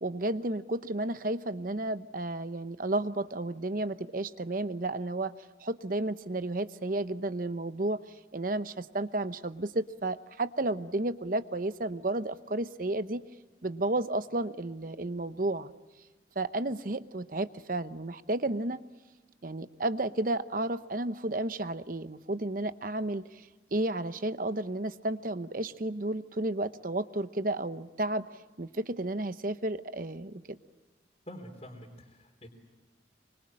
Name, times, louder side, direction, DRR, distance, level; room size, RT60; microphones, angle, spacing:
voice 1, 0.0-5.3 5.6-8.0 8.3-13.2 13.6-15.7 16.3-18.8 19.4-23.4 23.7-28.3 28.6-30.4, right 2 dB, 50° right, 12 dB, 0.9 m, -32 dB
voice 2, 31.3-32.5, equal, 35° left, -3 dB, 3.5 m, -46 dB
25.5 x 25.0 x 8.7 m, 1.2 s
head